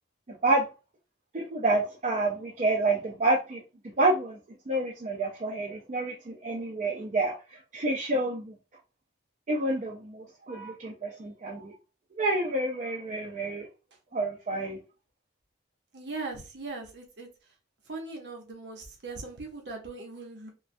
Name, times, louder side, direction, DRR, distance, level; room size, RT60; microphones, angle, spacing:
voice 1, 1.3-3.6 4.0-4.4 4.7-7.4 7.7-8.5 9.5-11.7 12.2-13.6 14.1-14.8, right 2 dB, 40° right, 0.4 m, -28 dB
voice 2, 15.9-17.3 17.9-20.5, right 3 dB, 65° right, 0.8 m, -39 dB
3.2 x 2.2 x 2.6 m
head